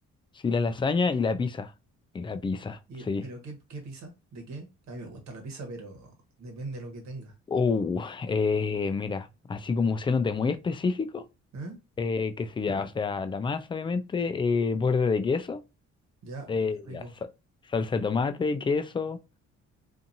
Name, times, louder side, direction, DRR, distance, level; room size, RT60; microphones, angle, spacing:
voice 1, 0.4-1.7 2.1-2.8 3.1-3.2 7.5-11.2 12.0-15.6 16.5-17.0 17.7-19.2, left 4 dB, 15° left, 0.3 m, -27 dB
voice 2, 2.9-7.3 11.5-11.8 16.2-17.1, right 2 dB, 65° right, 1.2 m, -41 dB
2.6 x 2.6 x 2.6 m
cardioid pair, 90°, 30 cm